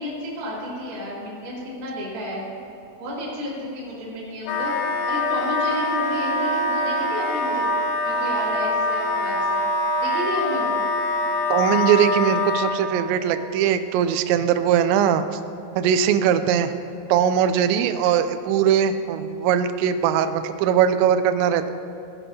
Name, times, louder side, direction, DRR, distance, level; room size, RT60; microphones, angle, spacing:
voice 1, 0.0-2.4 3.0-4.7 5.0-9.6 10.0-10.8, equal, 45° right, -8 dB, 4.0 m, -31 dB
Wind instrument woodwind instrument, 4.4-12.8, left 2 dB, 80° left, 2.9 m, -24 dB
voice 2, 11.5-15.2 15.8-16.7 17.1-21.7, right 9 dB, 90° right, 10 dB, 2.5 m, -20 dB
17.0 x 11.0 x 2.8 m, 2.9 s
omnidirectional pair, 5.7 m